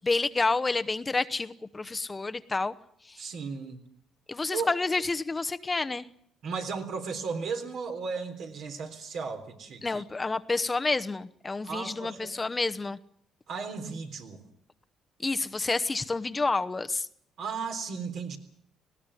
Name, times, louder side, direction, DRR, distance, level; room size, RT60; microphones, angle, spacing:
voice 1, 0.0-2.7 3.1-3.2 4.3-6.1 9.8-13.0 15.2-17.1, left 3 dB, 25° left, 11 dB, 0.9 m, -29 dB
voice 2, 3.2-3.8 4.5-4.7 6.4-10.0 11.6-12.3 13.5-14.4 17.4-18.4, right 5 dB, 70° right, 4 dB, 3.6 m, -35 dB
19.5 x 17.0 x 9.9 m, 0.67 s
supercardioid pair, 75°, 0 cm